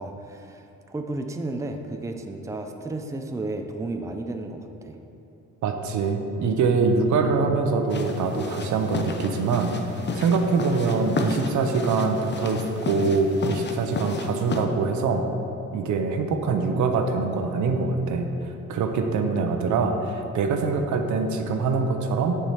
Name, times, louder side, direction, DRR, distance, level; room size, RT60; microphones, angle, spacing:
voice 1, 0.0-5.0, right 2 dB, 10° right, 5 dB, 0.5 m, -33 dB
voice 2, 5.6-15.2 15.7-22.4, right 4 dB, 75° right, 5 dB, 0.8 m, -24 dB
sound 1, 7.9-14.6, left 3 dB, 35° left, 0.8 m, -32 dB
7.3 x 4.8 x 5.7 m, 2.9 s
cardioid pair, 90°, 30 cm